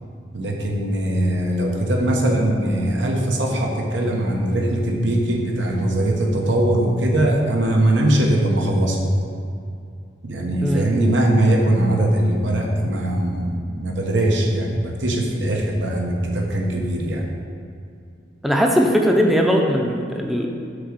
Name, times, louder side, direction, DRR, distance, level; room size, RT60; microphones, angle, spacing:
voice 1, 0.3-9.1 10.2-17.3, right 1 dB, 85° right, 0 dB, 1.0 m, -21 dB
voice 2, 18.4-20.5, equal, ahead, 0 dB, 0.5 m, -19 dB
6.5 x 3.8 x 6.1 m, 2.4 s
head